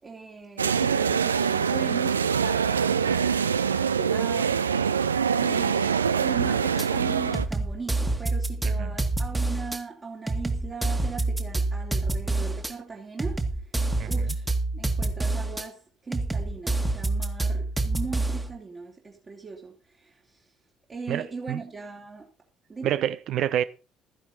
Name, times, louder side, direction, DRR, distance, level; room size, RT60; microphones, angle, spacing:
voice 1, 0.0-5.0 5.3-13.7 14.1-14.5 14.7-20.5 20.9-22.3 22.7-23.0, right 4 dB, 30° right, 3.5 m, -39 dB
sound 1, 0.6-7.4, right 7 dB, 80° right, 0.5 m, -24 dB
sound 2, 6.8-6.9 7.3-9.8 10.3-12.7 13.2-15.6 16.1-18.5, right 2 dB, 10° right, 2.2 m, -27 dB
voice 2, 14.0-14.3 21.1-21.6 22.8-23.6, right 11 dB, 50° right, 0.8 m, -28 dB
14.0 x 11.0 x 4.2 m
figure-of-eight pair, 50°, 0 cm